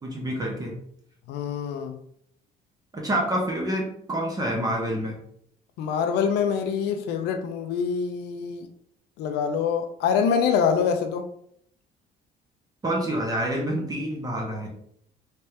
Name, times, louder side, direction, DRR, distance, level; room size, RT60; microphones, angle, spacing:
voice 1, 0.0-0.8 2.9-5.2 12.8-14.7, right 1 dB, 20° right, -1 dB, 0.9 m, -27 dB
voice 2, 1.3-2.0 5.8-8.7 9.2-11.3, left 6 dB, 85° left, 7 dB, 0.5 m, -25 dB
3.3 x 3.3 x 2.8 m, 0.68 s
cardioid pair, 110°, 17 cm